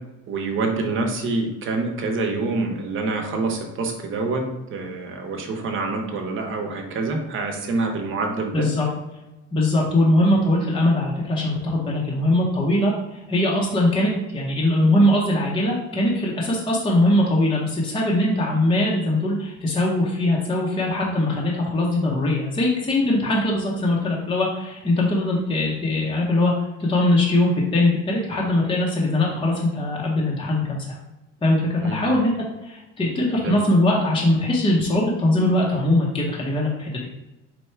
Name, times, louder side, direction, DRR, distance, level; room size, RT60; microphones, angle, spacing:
voice 1, 0.3-4.4 4.7-8.7 31.8-32.1 33.4-33.6, right 3 dB, 45° right, 3 dB, 0.9 m, -26 dB
voice 2, 8.5-8.9 9.5-26.5 26.8-31.0 31.4-32.3 32.6-37.1, left 1 dB, 15° left, -3 dB, 0.7 m, -21 dB
4.4 x 2.2 x 4.4 m, 1.0 s
cardioid pair, 115°, 30 cm